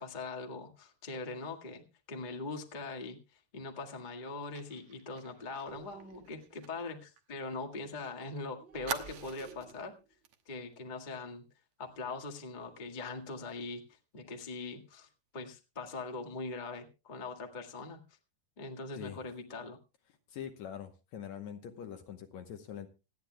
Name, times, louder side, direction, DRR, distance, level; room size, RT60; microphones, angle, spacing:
voice 1, 0.0-1.8 2.1-9.9 10.4-11.4 11.8-18.0 18.6-19.8, left 3 dB, 25° left, 2 dB, 1.0 m, -42 dB
Fire, 4.6-8.0 8.3-8.4 8.9-9.8 10.2-10.4 10.7-11.0, right 8 dB, 60° right, 1.7 m, -45 dB
sound 1, 5.7-6.5 8.6-10.1 11.8-12.2 12.5-12.9 13.2-13.4, right 4 dB, 25° right, 1.9 m, -55 dB
voice 2, 20.3-22.9, left 9 dB, 70° left, 6 dB, 2.0 m, -44 dB
26.0 x 9.6 x 2.2 m, 0.29 s
omnidirectional pair, 3.8 m